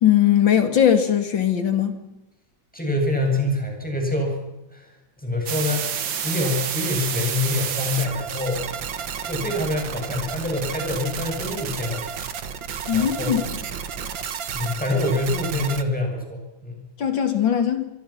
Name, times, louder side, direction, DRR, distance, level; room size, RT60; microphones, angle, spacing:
voice 1, 0.0-2.0 12.9-13.4 17.0-17.9, left 9 dB, 70° left, 3.3 m, -19 dB
voice 2, 2.7-4.4 4.7-5.9 6.2-8.6 9.3-12.0 12.9-13.3 14.5-16.8, left 2 dB, 5° left, 7.6 m, -26 dB
sound 1, 5.5-15.8, right 7 dB, 70° right, 2.2 m, -30 dB
27.0 x 23.5 x 6.0 m
omnidirectional pair, 2.1 m